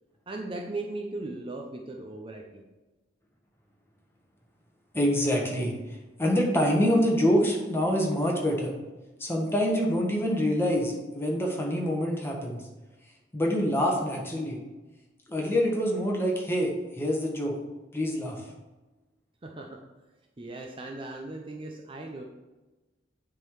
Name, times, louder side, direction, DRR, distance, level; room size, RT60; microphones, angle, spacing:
voice 1, 0.3-2.6 19.4-19.8 20.4-22.2, right 2 dB, 30° right, 1 dB, 0.7 m, -38 dB
voice 2, 4.9-5.7 6.2-8.7 9.2-12.6 13.3-14.6 15.3-17.6 17.9-18.4, equal, 15° left, -1 dB, 1.4 m, -26 dB
9.6 x 3.9 x 4.6 m, 1.1 s
head